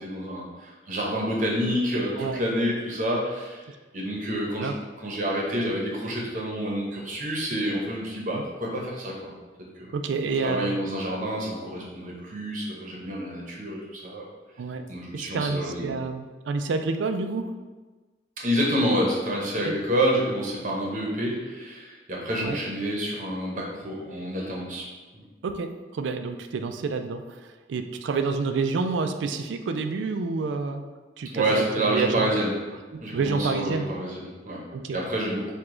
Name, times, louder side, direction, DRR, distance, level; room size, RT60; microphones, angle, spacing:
voice 1, 0.0-3.6 3.9-4.7 5.0-9.3 9.8-9.9 10.4-14.2 14.9-15.9 18.4-24.8 25.1-25.2 31.3-32.5 33.0-34.6 34.9-35.5, equal, 45° right, -2 dB, 0.8 m, -28 dB
voice 2, 9.9-10.8 14.6-14.8 15.1-17.6 19.6-19.7 22.4-22.6 25.4-30.8 31.2-32.3 32.9-33.9 34.7-35.0, right 4 dB, 85° right, 7 dB, 0.4 m, -28 dB
4.8 x 2.3 x 3.7 m, 1.3 s
head